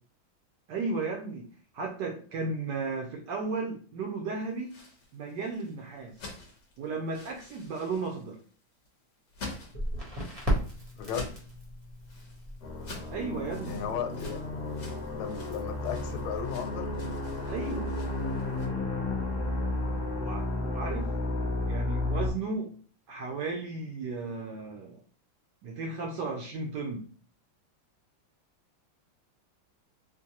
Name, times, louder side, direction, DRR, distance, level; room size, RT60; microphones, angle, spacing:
voice 1, 0.7-1.5 1.7-4.8 5.1-6.2 6.8-8.4 13.1-13.8 14.1-14.2 17.4-17.9 20.2-21.1 21.7-22.8 23.1-25.0 25.6-27.0, right 3 dB, 70° right, 1 dB, 1.1 m, -34 dB
sound 1, 4.5-18.7, left 2 dB, 45° left, 1.0 m, -47 dB
Crackle, 9.7-16.4, equal, 25° right, 0.7 m, -37 dB
voice 2, 10.9-11.4 13.6-14.4 15.1-16.9, left 8 dB, 85° left, 6 dB, 1.4 m, -35 dB
sound 2, 12.6-22.3, left 2 dB, 65° left, 1.1 m, -32 dB
3.8 x 2.5 x 2.8 m, 0.42 s
omnidirectional pair, 2.2 m